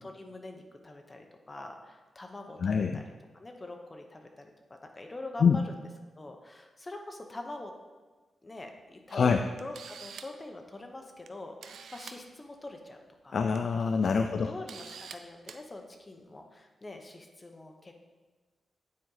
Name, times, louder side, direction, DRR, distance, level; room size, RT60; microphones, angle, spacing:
voice 1, 0.0-3.0 3.3-5.6 6.2-7.7 8.4-9.3 9.6-13.4 14.1-17.9, left 2 dB, 20° left, 3 dB, 0.8 m, -44 dB
voice 2, 2.6-3.0 5.4-5.6 9.1-9.4 13.3-14.5, left 5 dB, 55° left, 6 dB, 0.3 m, -25 dB
Camera, 9.1-9.2 9.6-10.4 11.3-11.4 11.6-12.2 13.3-13.6 14.0-14.1 14.7-15.2 15.5-15.6, right 7 dB, 85° right, 0.4 m, -46 dB
9.5 x 4.2 x 3.9 m, 1.3 s
wide cardioid pair, 120°, 0 cm